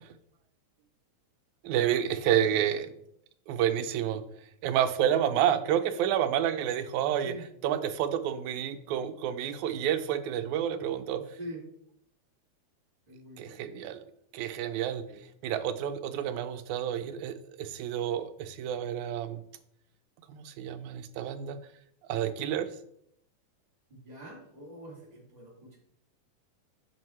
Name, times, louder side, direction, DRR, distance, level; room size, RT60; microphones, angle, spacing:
voice 1, 1.6-2.9 3.5-4.2 4.6-7.4 7.6-11.2 13.4-14.0 14.3-15.0 15.4-19.4 20.3-21.6 22.1-22.7, right 10 dB, 80° right, 9 dB, 2.0 m, -29 dB
voice 2, 2.5-2.9 7.2-7.4 11.2-11.6 13.1-13.9 15.1-15.2 23.9-25.8, right 1 dB, 15° right, -3 dB, 2.1 m, -45 dB
9.0 x 6.4 x 3.2 m, 0.72 s
omnidirectional pair, 3.4 m